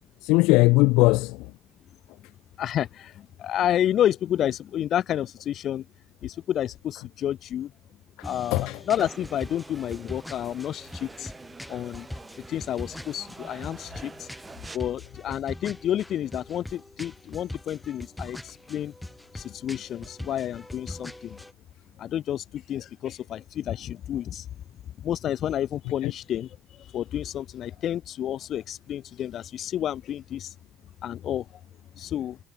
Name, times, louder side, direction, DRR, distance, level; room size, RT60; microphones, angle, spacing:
voice 1, 0.2-1.5 8.2-8.8 26.0-26.1, left 23 dB, 75° left, 0.4 m, -20 dB
voice 2, 2.6-5.9 6.2-7.7 8.2-11.3 11.7-12.1 12.5-14.3 14.7-18.9 19.3-21.4 22.0-24.5 25.0-30.5 31.0-31.5 31.9-32.4, left 11 dB, 55° left, 1.2 m, -30 dB
sound 1, 8.2-21.5, left 1 dB, 5° left, 3.7 m, -42 dB
sound 2, 9.0-14.8, right 3 dB, 25° right, 6.2 m, -46 dB
hypercardioid pair, 70°, 0 cm